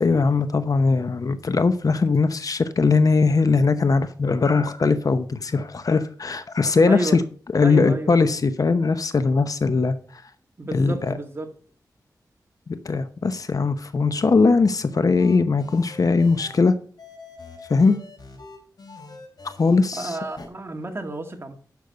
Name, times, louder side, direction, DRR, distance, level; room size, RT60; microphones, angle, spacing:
voice 1, 0.0-7.2 7.5-10.2 10.7-11.1 12.7-16.7 17.7-18.0 19.6-20.2, left 4 dB, 60° left, 0.8 m, -20 dB
voice 2, 6.9-7.2 7.6-8.2 10.6-11.5 19.9-21.5, right 2 dB, 35° right, 2.1 m, -31 dB
sound 1, 15.1-16.6 17.0-19.8 20.2-20.5, left 3 dB, 80° left, 4.1 m, -43 dB
10.5 x 6.4 x 5.3 m
wide cardioid pair, 70°, 7 cm